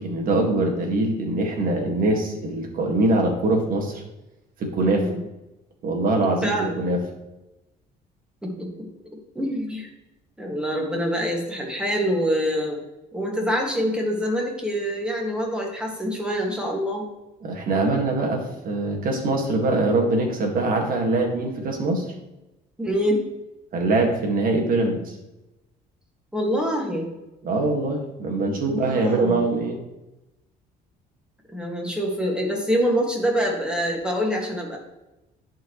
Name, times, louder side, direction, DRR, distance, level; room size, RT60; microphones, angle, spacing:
voice 1, 0.0-4.0 4.6-5.1 5.8-7.0 17.4-22.0 23.7-25.1 27.4-29.8, right 2 dB, 55° right, 1 dB, 1.8 m, -23 dB
voice 2, 4.9-5.2 6.4-6.8 8.4-8.7 9.4-9.9 10.4-12.8 13.1-17.1 22.8-23.2 26.3-27.1 28.5-29.4 31.5-34.8, equal, 5° right, 0 dB, 1.8 m, -25 dB
11.0 x 4.5 x 3.1 m, 0.97 s
cardioid pair, 110°, 17 cm